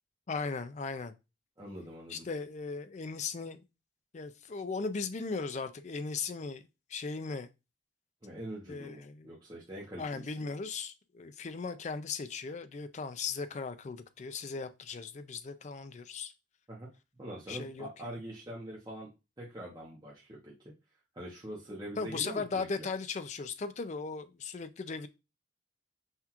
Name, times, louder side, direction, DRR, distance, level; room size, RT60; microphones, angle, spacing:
voice 1, 0.3-1.1 2.1-3.6 4.1-6.6 6.9-7.5 8.7-9.3 10.0-16.3 17.5-17.9 22.0-25.1, left 4 dB, 35° left, 0.3 m, -37 dB
voice 2, 1.6-2.3 8.2-10.5 16.7-16.9 17.2-19.1 19.4-20.7 21.1-22.9, right 1 dB, 20° right, 0.8 m, -44 dB
5.6 x 2.4 x 2.9 m
head